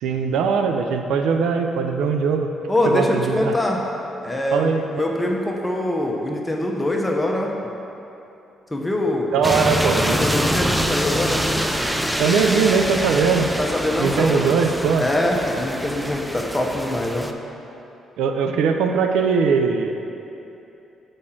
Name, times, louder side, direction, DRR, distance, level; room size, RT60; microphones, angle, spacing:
voice 1, 0.0-2.5 2.9-3.5 4.5-4.8 9.3-10.2 12.2-13.5 14.0-15.1 18.2-20.0, right 5 dB, 85° right, 5 dB, 0.4 m, -20 dB
voice 2, 2.7-3.8 4.2-7.6 8.7-9.6 10.1-11.5 13.6-14.4 14.9-17.3, left 1 dB, 15° left, 0 dB, 0.8 m, -23 dB
sound 1, 9.4-17.3, equal, 5° right, 0.4 m, -25 dB
4.9 x 4.2 x 5.8 m, 2.9 s
cardioid pair, 90°, 0 cm